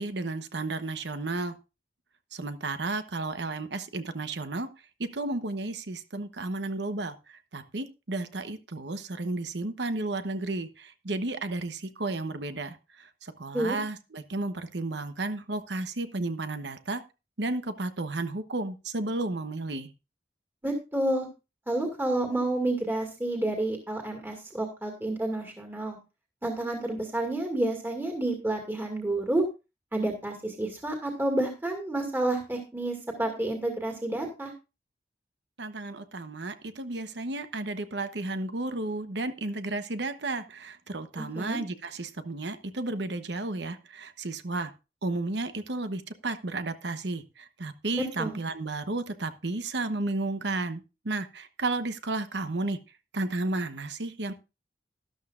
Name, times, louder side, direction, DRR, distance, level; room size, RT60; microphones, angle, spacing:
voice 1, 0.0-1.5 2.3-4.7 5.0-17.0 17.4-19.9 35.6-44.7 45.0-52.8 53.1-54.3, right 2 dB, 75° right, 10 dB, 1.1 m, -33 dB
voice 2, 20.6-21.3 21.7-26.0 26.4-29.4 29.9-34.5 41.2-41.6 48.2-48.4, right 1 dB, 15° right, 2 dB, 2.2 m, -29 dB
13.0 x 12.0 x 2.5 m, 0.28 s
head